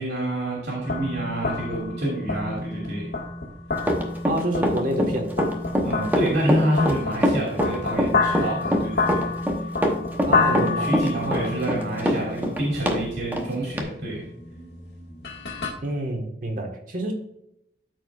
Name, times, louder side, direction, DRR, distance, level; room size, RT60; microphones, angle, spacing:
voice 1, 0.0-3.1 5.8-9.3 10.3-14.3, right 1 dB, 70° right, -4 dB, 2.6 m, -27 dB
sound 1, 0.8-15.7, left 3 dB, 75° left, 2.0 m, -29 dB
Run, 3.8-13.0 13.3-13.4 13.8-13.9, equal, 10° right, 0.9 m, -23 dB
voice 2, 4.2-5.3 10.3-11.3 15.8-17.1, right 1 dB, 50° right, 2 dB, 1.4 m, -28 dB
13.0 x 4.7 x 2.4 m, 0.79 s
head